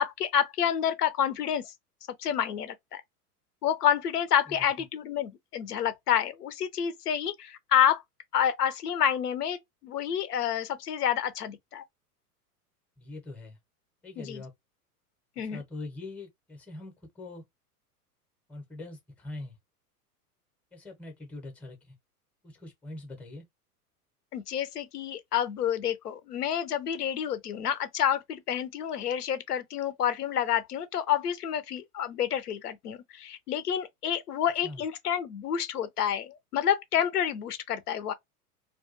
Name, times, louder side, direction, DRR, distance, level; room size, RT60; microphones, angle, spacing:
voice 1, 0.0-1.7 2.2-3.0 3.6-8.0 8.3-11.8 14.2-14.4 15.4-15.6 24.3-38.1, left 9 dB, 80° left, 0.6 m, -29 dB
voice 2, 13.0-13.6 14.0-14.5 15.4-17.4 18.5-19.6 20.7-21.9 22.4-23.4 34.6-34.8, left 2 dB, 5° left, 0.6 m, -43 dB
2.4 x 2.2 x 2.5 m
figure-of-eight pair, 90°, 46 cm